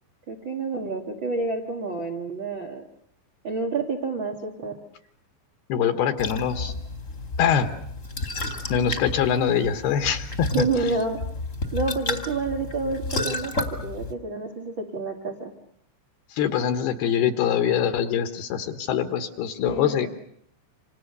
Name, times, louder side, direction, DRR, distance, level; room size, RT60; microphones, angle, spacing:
voice 1, 0.3-2.9 3.4-4.8 10.5-11.2 11.7-15.5 19.6-20.1, right 3 dB, 60° right, 2 dB, 1.2 m, -29 dB
voice 2, 5.7-6.7 7.4-7.7 8.7-10.5 16.3-20.1, left 8 dB, 70° left, 8 dB, 2.8 m, -24 dB
sound 1, 6.2-14.1, left 2 dB, 30° left, 1.5 m, -32 dB
28.5 x 26.5 x 6.7 m, 0.71 s
omnidirectional pair, 5.2 m